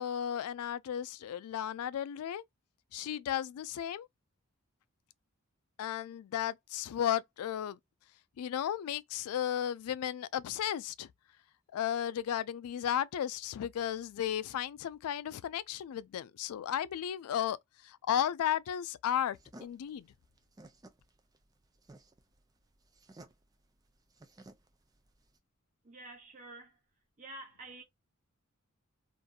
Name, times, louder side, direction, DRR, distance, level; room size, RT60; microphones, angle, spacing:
voice 1, 0.0-2.4 2.9-4.1 5.8-7.8 8.4-11.1 11.7-17.6 17.8-20.1, left 10 dB, 80° left, 0.3 m, -34 dB
sound 1, 19.3-25.4, right 2 dB, 15° right, 0.4 m, -56 dB
voice 2, 25.8-26.8 27.2-27.8, right 2 dB, 35° right, 0.8 m, -48 dB
2.6 x 2.5 x 2.3 m
head